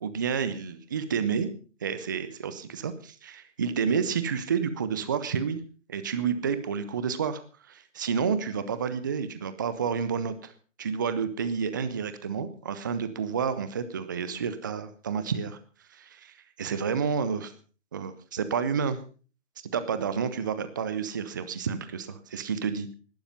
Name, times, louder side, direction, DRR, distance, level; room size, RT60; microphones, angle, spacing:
voice 1, 0.0-1.5 1.8-5.6 5.9-7.4 7.7-10.5 10.8-15.6 15.9-17.5 17.9-19.0 19.7-22.9, right 6 dB, 15° right, 12 dB, 0.6 m, -30 dB
17.0 x 12.0 x 5.3 m, 0.38 s
figure-of-eight pair, 145°, 39 cm